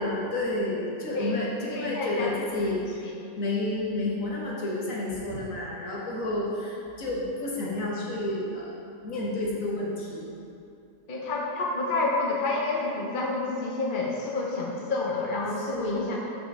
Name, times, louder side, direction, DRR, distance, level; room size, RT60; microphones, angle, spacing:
voice 1, 0.0-3.1 3.4-8.7 9.0-10.3 15.7-16.2, left 2 dB, 60° left, -4 dB, 1.6 m, -30 dB
voice 2, 1.1-2.3 11.1-16.2, left 3 dB, 40° left, -2 dB, 0.8 m, -29 dB
5.8 x 5.2 x 6.0 m, 2.6 s
omnidirectional pair, 1.6 m